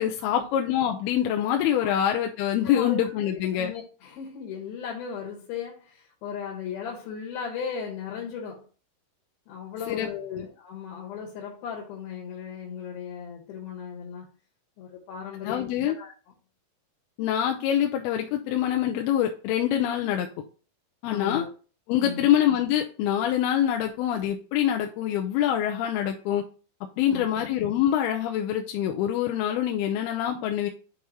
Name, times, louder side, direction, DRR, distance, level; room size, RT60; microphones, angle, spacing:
voice 1, 0.0-3.7 9.9-10.5 15.4-16.0 17.2-20.3 21.0-21.4 21.9-26.4 27.0-30.7, left 10 dB, 90° left, 2.6 m, -25 dB
voice 2, 2.6-3.0 3.3-8.7 9.5-14.3 14.8-16.1 21.1-21.5 22.0-22.3 27.1-27.4, left 7 dB, 75° left, 3.1 m, -37 dB
8.7 x 4.7 x 2.9 m
omnidirectional pair, 4.5 m